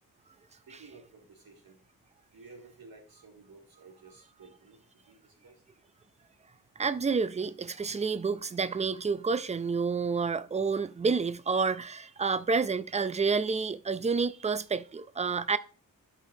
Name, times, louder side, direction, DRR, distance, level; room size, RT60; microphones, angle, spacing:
voice 1, 0.7-1.8 2.3-5.5, right 3 dB, 80° right, 2.7 m, -54 dB
voice 2, 6.8-15.6, right 5 dB, 20° right, 0.3 m, -29 dB
12.0 x 5.0 x 2.7 m
wide cardioid pair, 120°, 36 cm